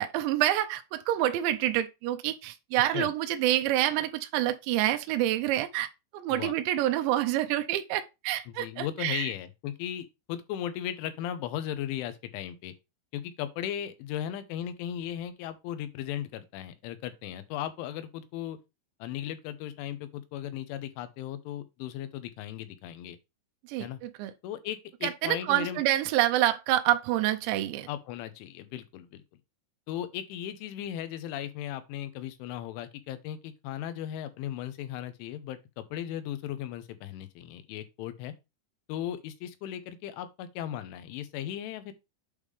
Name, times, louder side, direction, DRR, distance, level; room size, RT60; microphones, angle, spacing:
voice 1, 0.0-5.9 6.1-9.3 23.7-24.3 25.0-27.9, right 13 dB, 85° right, 2.8 m, -27 dB
voice 2, 8.5-12.7 13.1-18.6 19.0-23.2 23.8-24.0 24.4-25.8 27.9-29.2 29.9-38.3 38.9-41.9, left 11 dB, 90° left, 3.3 m, -37 dB
8.3 x 3.6 x 4.8 m
omnidirectional pair, 5.4 m